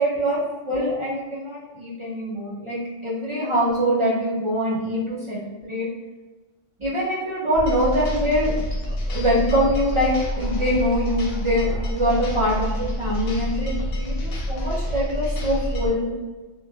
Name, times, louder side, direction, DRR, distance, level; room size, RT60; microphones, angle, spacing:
voice 1, 0.0-5.9 6.8-8.5 9.1-16.1, equal, 50° right, -7 dB, 0.3 m, -24 dB
sound 1, 7.5-15.9, equal, 60° left, 0.7 m, -27 dB
3.0 x 2.1 x 2.2 m, 1.3 s
omnidirectional pair, 1.3 m